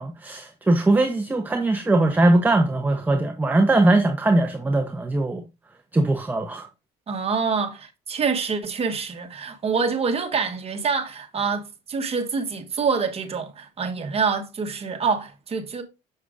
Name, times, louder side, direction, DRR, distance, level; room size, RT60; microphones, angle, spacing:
voice 1, 0.0-5.4 5.9-6.7, right 2 dB, 10° right, 0.8 m, -20 dB
voice 2, 7.1-15.8, right 5 dB, 35° right, 1.2 m, -26 dB
6.5 x 6.5 x 2.4 m
cardioid pair, 110°, 17 cm